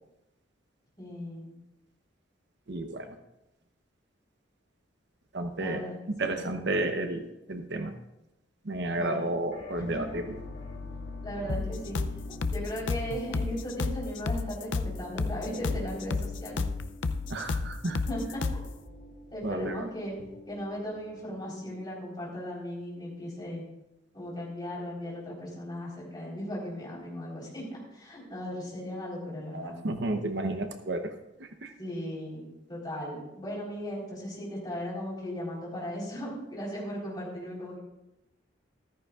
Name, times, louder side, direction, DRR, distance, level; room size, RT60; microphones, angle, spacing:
voice 1, 1.0-1.5 5.6-6.0 6.2-6.4 8.9-9.2 9.9-10.0 11.2-12.0 12.3-16.6 18.1-18.6 19.3-20.2 20.5-23.6 24.1-29.8 31.8-37.8, equal, 20° left, -5 dB, 4.1 m, -37 dB
voice 2, 2.7-3.1 5.3-5.8 6.1-7.9 8.6-10.4 17.3-18.0 19.4-19.8 29.5-31.1 31.4-31.7, right 2 dB, 60° right, 6 dB, 0.9 m, -32 dB
sound 1, 9.5-21.4, left 2 dB, 45° left, 2.6 m, -45 dB
sound 2, 11.5-18.7, left 3 dB, 75° left, 0.6 m, -31 dB
14.0 x 13.5 x 2.5 m, 0.91 s
head